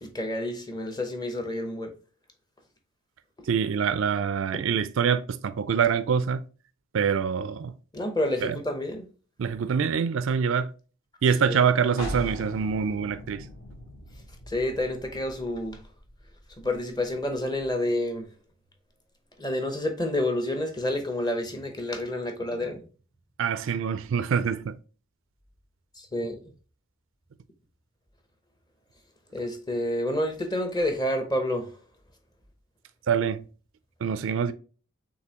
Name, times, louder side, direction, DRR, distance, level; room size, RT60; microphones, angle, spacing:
voice 1, 0.0-1.9 7.9-9.1 14.5-15.8 16.6-18.3 19.4-22.8 26.1-26.4 29.3-31.7, left 1 dB, 20° left, 0.7 m, -29 dB
voice 2, 3.5-6.5 6.9-7.7 8.4-8.6 9.4-10.7 11.2-13.5 23.4-24.8 33.1-33.4 34.0-34.5, right 6 dB, 60° right, 0.3 m, -25 dB
sound 1, 12.0-17.5, equal, 70° left, 1.4 m, -40 dB
6.7 x 2.7 x 2.8 m
head